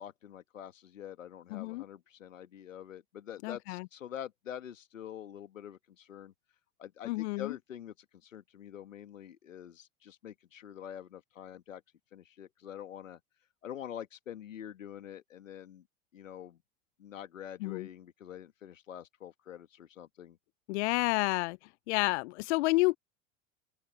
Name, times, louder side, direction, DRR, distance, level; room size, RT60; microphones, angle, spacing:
voice 1, 0.0-6.3 6.8-7.9 8.2-11.8 12.1-13.2 13.6-15.9 16.1-16.6 17.0-20.4, left 10 dB, 80° left, 1.8 m, -46 dB
voice 2, 1.5-1.8 3.4-3.9 7.0-7.6 17.6-17.9 20.7-21.6 21.9-23.0, left 23 dB, 60° left, 0.5 m, -30 dB
open air
hypercardioid pair, 80°, 38 cm